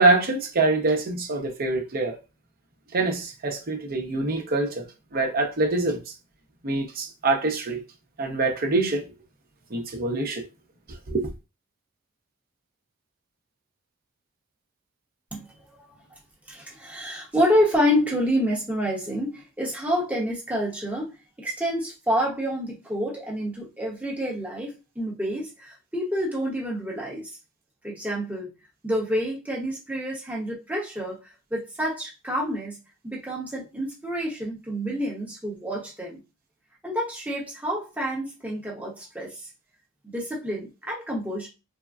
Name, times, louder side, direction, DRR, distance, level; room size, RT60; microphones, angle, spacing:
voice 1, 0.0-2.2 2.9-4.9 5.1-6.0 6.6-7.8 8.2-9.1 9.7-10.4 11.1-11.2, right 3 dB, 45° right, 0.7 m, -24 dB
voice 2, 16.5-27.4 27.8-28.5 28.8-31.2 31.5-32.8 33.0-36.2 36.8-39.5 40.0-41.5, equal, 5° right, 0.9 m, -28 dB
3.4 x 2.1 x 2.4 m
head